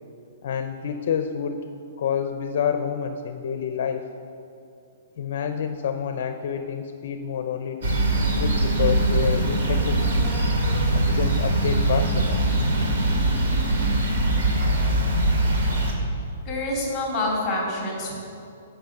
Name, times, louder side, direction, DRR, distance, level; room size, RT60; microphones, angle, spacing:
voice 1, 0.4-1.6 2.0-4.1 5.2-7.9 8.3-10.1 10.9-12.4, left 7 dB, 50° left, 7 dB, 0.6 m, -28 dB
sound 1, 7.8-15.9, right 1 dB, 60° right, 2.2 m, -22 dB
voice 2, 16.4-18.2, left 2 dB, 10° left, -3 dB, 3.2 m, -27 dB
15.0 x 6.2 x 6.5 m, 2.5 s
hypercardioid pair, 170°, 0 cm